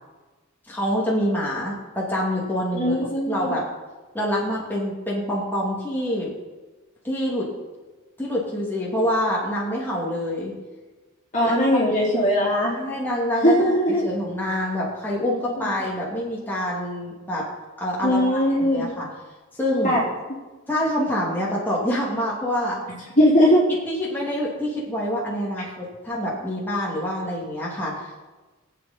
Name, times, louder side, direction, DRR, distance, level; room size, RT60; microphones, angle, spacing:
voice 1, 0.7-3.0 3.3-3.7 4.1-6.3 7.0-7.5 8.2-10.5 11.4-11.5 12.8-13.6 14.0-17.5 17.8-19.1 19.5-20.0 20.7-22.8 23.9-28.3, equal, 10° left, -5 dB, 2.6 m, -26 dB
voice 2, 2.7-3.5 11.3-12.8 13.4-14.0 15.6-15.7 18.0-18.9 19.8-20.0 22.9-23.6, equal, 35° left, -6 dB, 3.1 m, -20 dB
22.5 x 8.3 x 4.4 m, 1.2 s
head